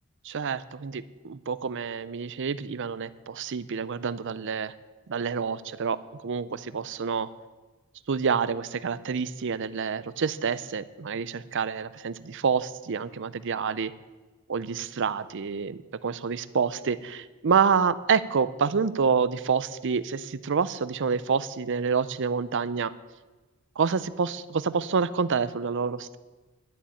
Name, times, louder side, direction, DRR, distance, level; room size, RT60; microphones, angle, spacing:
voice 1, 0.2-4.7 5.1-6.0 6.2-7.3 8.1-13.9 14.5-22.9 23.8-26.2, right 6 dB, 55° right, 16 dB, 0.5 m, -28 dB
11.5 x 7.2 x 8.5 m, 1.2 s
head